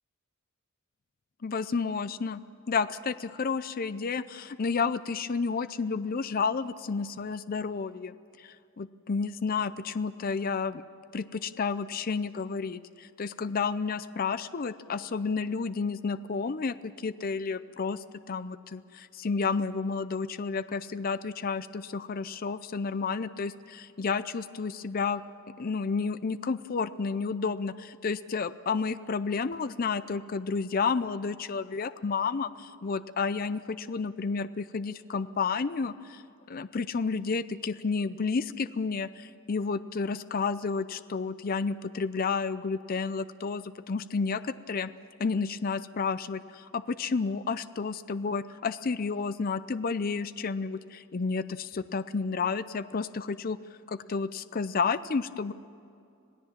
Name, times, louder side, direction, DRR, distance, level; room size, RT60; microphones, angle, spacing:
voice 1, 1.4-2.4 2.7-10.8 11.1-25.2 25.6-36.2 36.5-44.9 45.2-53.6 53.9-55.5, left 5 dB, 45° left, 14 dB, 0.5 m, -31 dB
26.5 x 17.5 x 7.4 m, 2.5 s
head